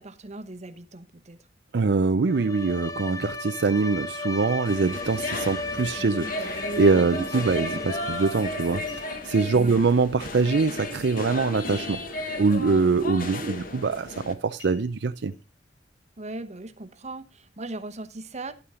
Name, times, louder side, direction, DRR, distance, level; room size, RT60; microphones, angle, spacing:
voice 1, 0.0-1.4 7.1-7.3 9.5-9.8 16.2-18.5, right 2 dB, 40° right, 1.0 m, -39 dB
voice 2, 1.7-12.0 12.4-15.3, right 4 dB, 70° right, 0.5 m, -24 dB
Bowed string instrument, 2.3-9.4, left 3 dB, 20° left, 0.7 m, -36 dB
sound 1, 4.6-14.3, left 1 dB, 50° left, 1.4 m, -34 dB
sound 2, 8.9-9.5 11.7-12.3 12.7-12.8 13.2-13.5 14.6-15.4 16.0-16.1, left 4 dB, 80° left, 2.1 m, -50 dB
11.5 x 8.8 x 3.7 m
head